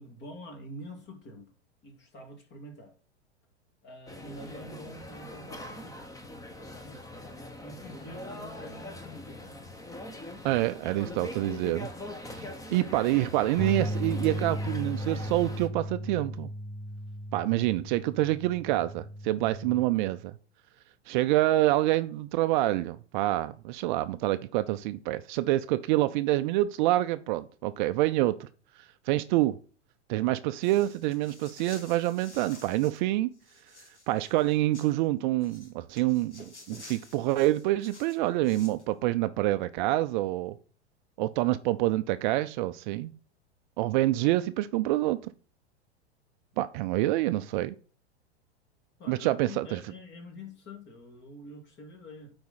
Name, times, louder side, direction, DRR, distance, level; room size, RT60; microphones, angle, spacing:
voice 1, 0.0-1.5 1.8-2.9 3.8-7.0 7.6-9.6 44.2-44.3 49.0-52.3, equal, 35° left, 2.3 m, -46 dB
sound 1, 4.1-15.7, left 2 dB, 10° left, 1.1 m, -42 dB
voice 2, 10.4-11.9 12.3-12.4 12.7-16.5 17.3-20.3 21.1-28.5 29.1-29.6 30.1-33.3 34.1-40.6 41.2-43.1 43.8-45.3 46.6-47.7 49.1-49.8, right 16 dB, 45° right, 0.5 m, -27 dB
sound 2, 13.6-19.8, equal, 10° right, 1.7 m, -36 dB
sound 3, 30.6-33.0 33.3-34.9 35.4-38.8, left 2 dB, 90° left, 1.9 m, -51 dB
9.3 x 4.3 x 4.0 m
hypercardioid pair, 100°, 34 cm